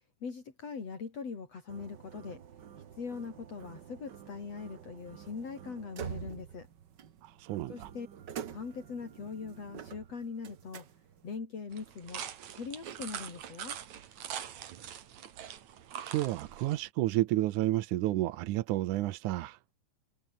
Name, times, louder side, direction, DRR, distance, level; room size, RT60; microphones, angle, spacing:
voice 1, 0.0-2.4 3.0-6.7 7.7-8.1 8.5-10.9 11.2-12.2 12.6-13.8, left 5 dB, 55° left, 4.9 m, -41 dB
sound 1, 1.7-11.4, right 8 dB, 50° right, 1.4 m, -47 dB
voice 2, 7.2-7.9 14.5-14.7 16.0-19.6, right 16 dB, 85° right, 2.3 m, -31 dB
sound 2, 11.7-16.9, right 9 dB, 70° right, 3.1 m, -43 dB
omnidirectional pair, 3.4 m